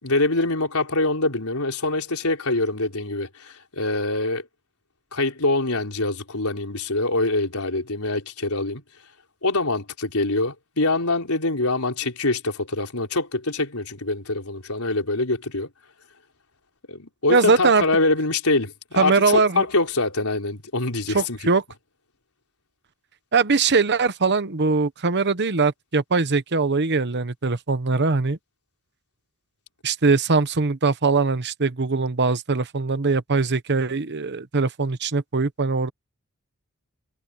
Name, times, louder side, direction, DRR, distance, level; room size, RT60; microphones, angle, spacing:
voice 1, 0.0-4.5 5.1-8.8 9.4-15.7 16.9-21.4, left 2 dB, 80° left, 4.5 m, -24 dB
voice 2, 17.3-17.8 19.0-19.7 21.1-21.6 23.3-28.4 29.8-35.9, right 4 dB, 50° right, 1.1 m, -21 dB
head